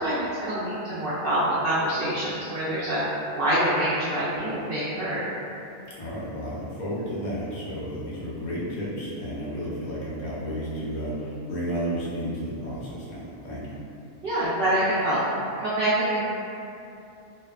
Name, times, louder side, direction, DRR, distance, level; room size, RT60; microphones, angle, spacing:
voice 1, 0.0-3.0 3.4-5.2 14.2-15.2 15.6-16.2, right 1 dB, 65° right, -12 dB, 0.5 m, -25 dB
voice 2, 5.9-13.8, equal, 90° left, -7 dB, 1.1 m, -32 dB
2.9 x 2.0 x 2.3 m, 2.7 s
omnidirectional pair, 1.5 m